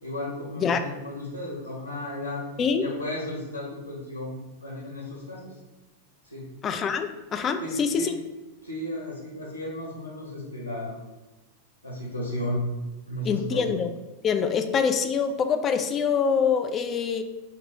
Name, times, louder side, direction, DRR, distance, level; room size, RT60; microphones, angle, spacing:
voice 1, 0.0-2.4 2.8-4.3 4.6-5.6 6.2-6.5 7.6-8.1 8.6-11.0 11.8-12.6 13.1-13.7, left 1 dB, 90° left, -6 dB, 1.1 m, -34 dB
voice 2, 6.6-8.1 13.3-13.9 14.2-17.2, left 6 dB, 25° left, 8 dB, 0.3 m, -25 dB
3.1 x 2.7 x 3.7 m, 1.1 s
figure-of-eight pair, 90°, 0 cm